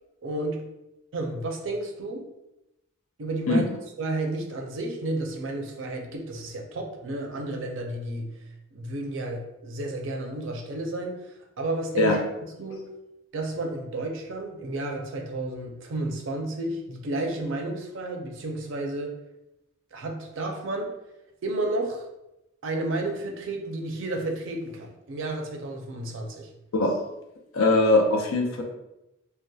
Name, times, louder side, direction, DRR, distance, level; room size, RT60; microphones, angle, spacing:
voice 1, 0.2-0.7 1.1-2.3 3.2-3.7 4.0-8.3 8.7-12.1 12.6-12.9 13.3-19.2 19.9-20.9 21.4-22.1 22.6-26.5, right 2 dB, 65° right, 2 dB, 0.4 m, -31 dB
voice 2, 27.5-28.6, left 2 dB, 85° left, 2 dB, 0.5 m, -21 dB
2.6 x 2.1 x 2.2 m, 0.89 s
head